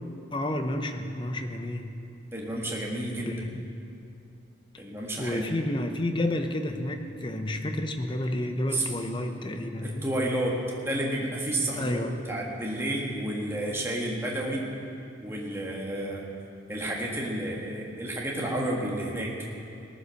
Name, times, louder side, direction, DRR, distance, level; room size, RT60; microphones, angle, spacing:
voice 1, 0.3-1.9 3.2-3.7 5.2-10.1 11.8-12.2, left 1 dB, 25° left, 6 dB, 0.8 m, -30 dB
voice 2, 2.3-3.4 4.8-5.4 8.7-8.8 9.8-12.0 12.3-14.7 15.2-16.3 16.7-19.4, right 1 dB, 15° right, -3 dB, 1.7 m, -31 dB
18.5 x 9.7 x 6.4 m, 2.6 s
head